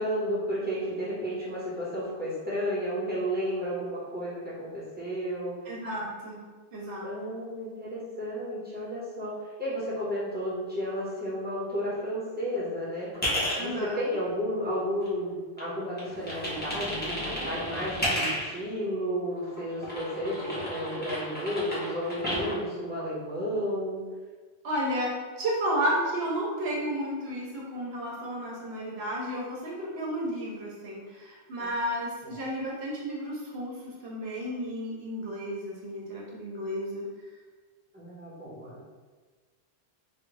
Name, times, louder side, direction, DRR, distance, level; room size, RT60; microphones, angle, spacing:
voice 1, 0.0-5.5 7.0-13.1 13.6-24.0 31.6-31.7 32.2-32.3 37.9-38.8, equal, 10° right, -9 dB, 1.2 m, -32 dB
voice 2, 5.6-6.5 6.7-7.0 13.6-14.0 24.6-37.1, equal, 75° right, -3 dB, 0.9 m, -32 dB
sound 1, 13.1-13.6 14.2-15.3 15.6-18.6 19.4-22.6, equal, 10° left, 0.8 m, -33 dB
3.3 x 2.3 x 3.2 m, 1.4 s
omnidirectional pair, 1.1 m